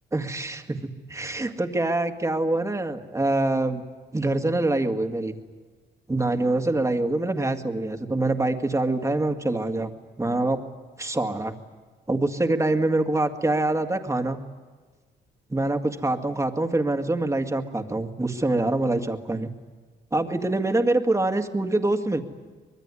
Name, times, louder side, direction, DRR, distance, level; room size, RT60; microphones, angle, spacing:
voice 1, 0.1-3.8 4.1-5.4 6.1-9.9 10.2-10.6 11.0-11.6 12.1-14.4 15.5-19.5 20.1-22.2, right 2 dB, 15° right, 6 dB, 2.1 m, -25 dB
25.0 x 21.0 x 9.9 m, 1.4 s
cardioid pair, 90°, 20 cm